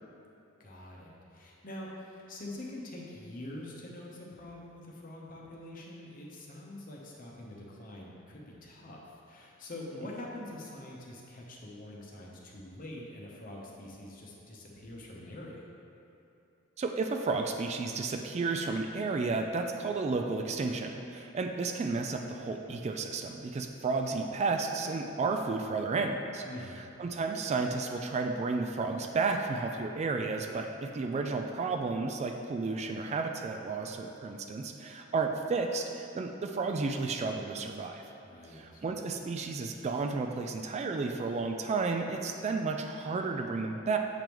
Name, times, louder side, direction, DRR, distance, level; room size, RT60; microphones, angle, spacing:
voice 1, 0.6-15.6 26.4-26.8 38.2-38.8, left 1 dB, 45° left, -2 dB, 0.9 m, -45 dB
voice 2, 16.8-26.4 27.0-38.0 38.5-44.0, right 4 dB, 30° right, 4 dB, 0.3 m, -32 dB
7.5 x 5.2 x 3.1 m, 2.8 s
head